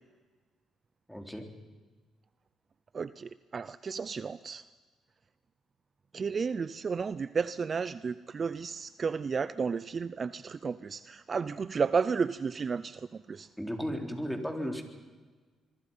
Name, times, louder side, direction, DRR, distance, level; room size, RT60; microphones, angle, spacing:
voice 1, 1.1-1.5 13.6-14.8, equal, ahead, 4 dB, 3.7 m, -35 dB
voice 2, 2.9-4.6 6.1-13.5, right 5 dB, 40° right, 16 dB, 0.6 m, -32 dB
26.0 x 23.0 x 5.6 m, 1.3 s
cardioid pair, 90°, 0 cm